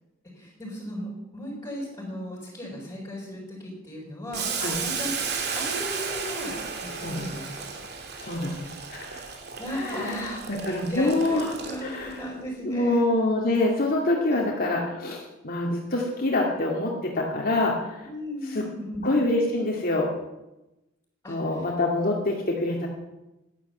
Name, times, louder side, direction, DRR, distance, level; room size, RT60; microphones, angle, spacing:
voice 1, 0.3-5.1 5.5-6.5 6.8-7.7 9.1-9.3 9.6-13.1 14.3-14.5 18.0-19.1 21.2-21.7, equal, 20° left, -8 dB, 6.1 m, -36 dB
Boiling, 4.3-12.1, right 5 dB, 55° right, 2.8 m, -34 dB
voice 2, 8.2-9.2 9.7-11.5 11.8-12.2 12.6-18.0 18.5-18.6 19.0-20.1 21.3-22.9, left 2 dB, 50° left, -1 dB, 2.3 m, -26 dB
15.0 x 11.5 x 8.3 m, 0.99 s
head